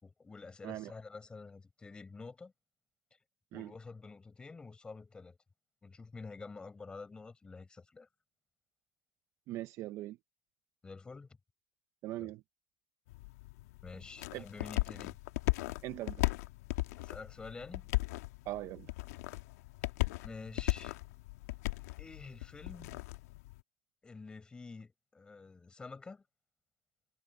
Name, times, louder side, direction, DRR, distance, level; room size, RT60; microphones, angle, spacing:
voice 1, 0.0-2.5 3.5-5.4 5.8-8.1 10.8-11.3 12.2-12.3 13.8-15.2 17.0-17.9 20.2-21.0 22.0-23.0 24.0-26.2, left 4 dB, 10° left, 4.3 m, -48 dB
voice 2, 9.5-10.2 12.0-12.4 14.3-14.4 15.8-16.2 18.5-18.9, right 15 dB, 30° right, 0.6 m, -40 dB
sound 1, 13.1-23.6, left 21 dB, 60° left, 1.6 m, -37 dB
supercardioid pair, 160°, 9 cm